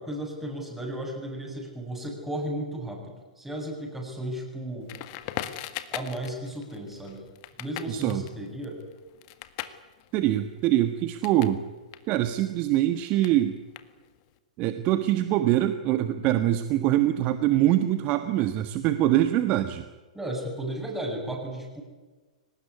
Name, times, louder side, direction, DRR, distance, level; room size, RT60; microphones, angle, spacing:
voice 1, 0.0-4.9 5.9-7.2 7.6-8.8 20.1-21.8, right 1 dB, 5° right, 1 dB, 7.5 m, -34 dB
Crackle, 4.9-11.6 11.9-14.3, left 14 dB, 40° left, 1.7 m, -40 dB
voice 2, 7.9-8.2 10.1-11.6 12.1-13.6 14.6-19.9, right 13 dB, 35° right, 10 dB, 1.4 m, -24 dB
23.5 x 19.5 x 9.7 m, 1.3 s
figure-of-eight pair, 105°, 4 cm